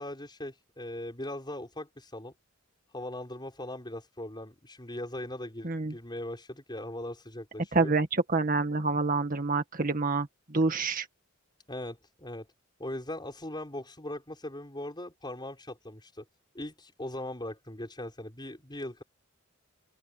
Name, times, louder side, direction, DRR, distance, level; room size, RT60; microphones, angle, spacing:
voice 1, 0.0-2.3 2.9-7.9 11.7-12.5 12.8-16.3 16.5-19.0, left 1 dB, 20° left, 5.3 m, -39 dB
voice 2, 7.7-11.1, right 3 dB, 45° right, 1.9 m, -27 dB
open air
head